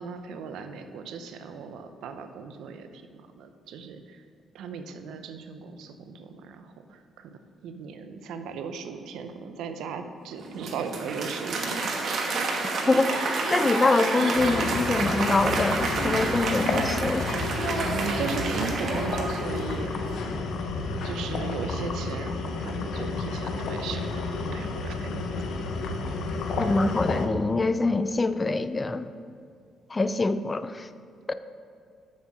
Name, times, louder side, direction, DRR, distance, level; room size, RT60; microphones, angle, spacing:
voice 1, 0.0-4.2 4.5-12.0 17.9-20.3 21.0-24.2 24.5-25.4 26.1-26.2, right 6 dB, 85° right, 8 dB, 0.6 m, -37 dB
Applause, 10.4-19.9, right 3 dB, 60° right, 1.2 m, -29 dB
voice 2, 12.9-17.3 26.6-29.1 29.9-30.9 31.3-31.4, left 3 dB, 25° left, 12 dB, 0.4 m, -25 dB
sound 1, 14.4-27.3, left 3 dB, 75° left, 0.8 m, -31 dB
7.2 x 6.5 x 6.0 m, 2.2 s
cardioid pair, 90°, 0 cm